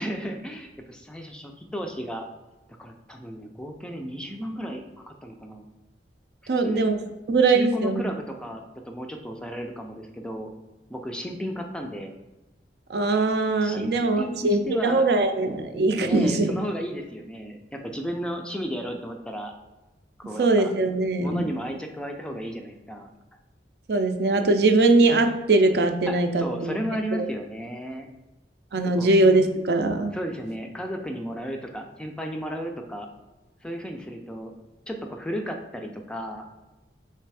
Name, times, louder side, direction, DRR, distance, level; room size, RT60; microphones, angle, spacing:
voice 1, 0.0-2.3 2.8-5.7 6.6-6.8 7.5-10.5 10.9-12.1 13.6-15.1 16.0-19.5 20.2-20.7 21.2-23.1 26.1-28.1 28.7-29.1 30.1-33.1 33.6-34.5 34.9-36.5, equal, 5° left, 3 dB, 0.4 m, -34 dB
voice 2, 6.5-7.0 7.3-8.0 12.9-16.5 20.4-21.5 23.9-26.8 27.2-27.3 28.7-30.1, right 2 dB, 65° right, 6 dB, 0.5 m, -21 dB
3.4 x 3.2 x 4.6 m, 1.1 s
head